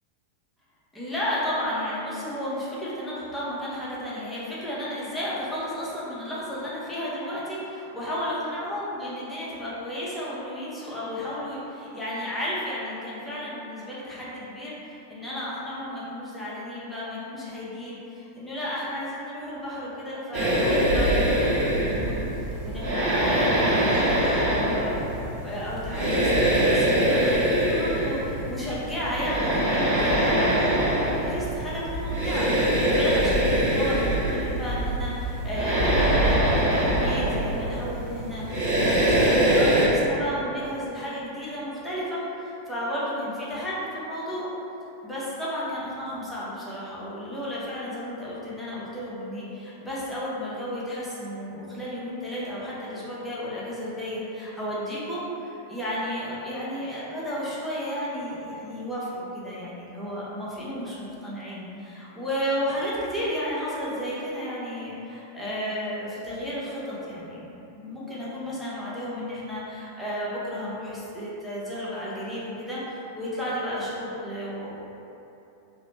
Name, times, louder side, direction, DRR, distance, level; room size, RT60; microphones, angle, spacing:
voice 1, 0.9-22.2 22.6-30.9 31.1-38.4 38.8-44.5 45.0-74.7, equal, 5° left, -9 dB, 0.7 m, -33 dB
sound 1, 20.3-39.9, right 1 dB, 45° right, 1.0 m, -23 dB
2.8 x 2.0 x 3.2 m, 2.9 s
figure-of-eight pair, 90°, 0 cm